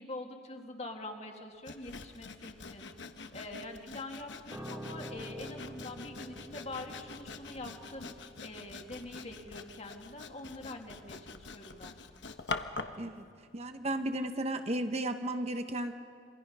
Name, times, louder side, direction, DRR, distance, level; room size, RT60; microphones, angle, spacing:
voice 1, 0.0-2.9 3.3-12.0, left 2 dB, 35° left, 3 dB, 2.1 m, -44 dB
Sawing, 1.7-13.0, left 4 dB, 75° left, 1.1 m, -45 dB
Piano, 4.5-13.9 14.2-14.4, right 1 dB, 10° right, 1.5 m, -50 dB
voice 2, 13.5-15.9, right 1 dB, 35° right, 7 dB, 1.1 m, -34 dB
27.5 x 24.0 x 5.6 m, 2.3 s
head